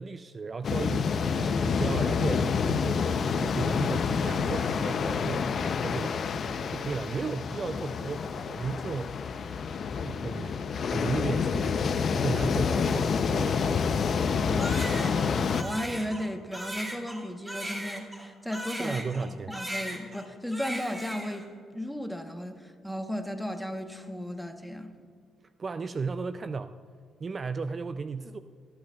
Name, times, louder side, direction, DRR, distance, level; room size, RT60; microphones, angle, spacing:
voice 1, 0.0-3.1 3.4-6.2 6.7-9.1 9.5-13.6 18.8-19.6 25.6-26.7 27.2-28.4, right 4 dB, 35° right, 11 dB, 0.3 m, -35 dB
sound 1, 0.6-15.6, left 6 dB, 55° left, 0.5 m, -28 dB
voice 2, 14.2-24.9, equal, ahead, 5 dB, 1.0 m, -35 dB
Crying sobbing, 14.6-19.3 19.5-20.2 20.5-21.5, right 1 dB, 15° right, 2.3 m, -38 dB
25.5 x 8.7 x 2.3 m, 2.1 s
cardioid pair, 90°, 0 cm